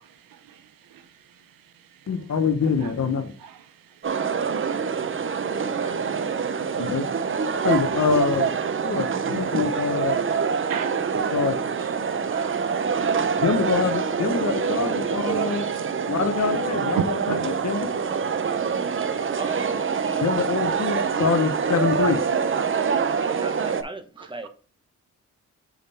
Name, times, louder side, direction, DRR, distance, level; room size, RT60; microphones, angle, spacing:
voice 1, 0.0-2.3 2.8-2.9 3.4-6.7 7.2-7.7 8.8-9.2 9.5-14.0 14.3-14.4 15.2-15.7 16.1-16.5 16.9-17.7 18.3-18.7 19.5-19.6 20.7-20.8 22.8-23.4 24.2-24.5, right 8 dB, 85° right, 0.7 m, -40 dB
voice 2, 2.1-3.3 6.8-7.0 7.6-8.5 8.8-10.2 11.3-11.6 13.4-15.7 16.1-17.0 17.3-17.9 20.2-22.2, left 5 dB, 50° left, 0.9 m, -25 dB
sound 1, 4.0-23.8, right 6 dB, 40° right, 0.6 m, -25 dB
voice 3, 19.3-20.8 23.2-24.5, right 2 dB, 15° right, 1.1 m, -39 dB
6.9 x 3.8 x 4.2 m
cardioid pair, 70°, 33 cm